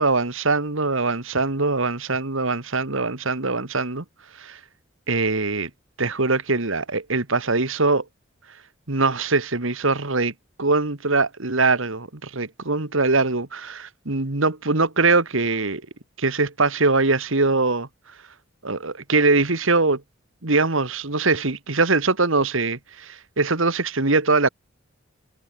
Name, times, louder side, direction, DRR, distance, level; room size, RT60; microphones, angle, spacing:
voice 1, 0.0-4.0 4.4-4.6 5.1-5.7 6.0-8.0 8.9-10.3 10.6-15.8 16.2-17.9 18.6-20.0 20.4-24.5, right 3 dB, 75° right, 2.0 m, -22 dB
head